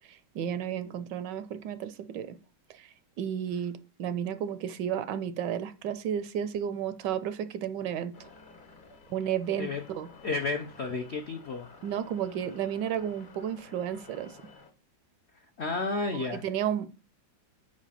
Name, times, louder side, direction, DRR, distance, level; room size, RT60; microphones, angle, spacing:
voice 1, 0.1-2.4 2.7-2.9 3.2-8.3 9.1-10.1 11.8-14.4 16.1-16.9, right 9 dB, 75° right, 1.1 m, -32 dB
sound 1, 8.1-14.7, left 3 dB, 35° left, 0.8 m, -53 dB
voice 2, 9.5-9.8 10.2-11.7 15.6-16.4, left 3 dB, 70° left, 0.6 m, -32 dB
5.0 x 5.0 x 5.5 m
omnidirectional pair, 2.1 m